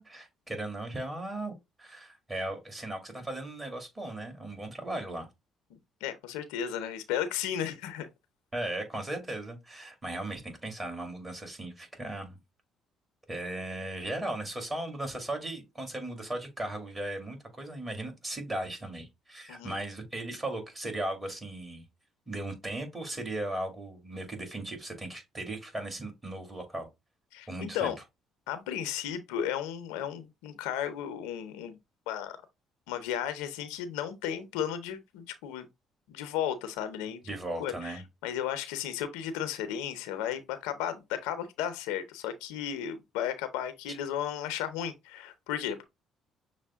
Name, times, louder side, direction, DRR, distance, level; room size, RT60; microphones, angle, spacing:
voice 1, 0.0-1.5 1.8-5.3 8.5-12.4 13.3-21.8 22.3-26.9 27.5-27.9 37.3-38.0, right 1 dB, 20° right, 2.1 m, -37 dB
voice 2, 6.0-8.1 19.5-19.7 27.3-28.0 28.5-31.8 32.1-32.4 32.9-35.7 36.1-45.8, left 10 dB, 85° left, 0.6 m, -34 dB
6.3 x 2.1 x 3.5 m
supercardioid pair, 65°, 0 cm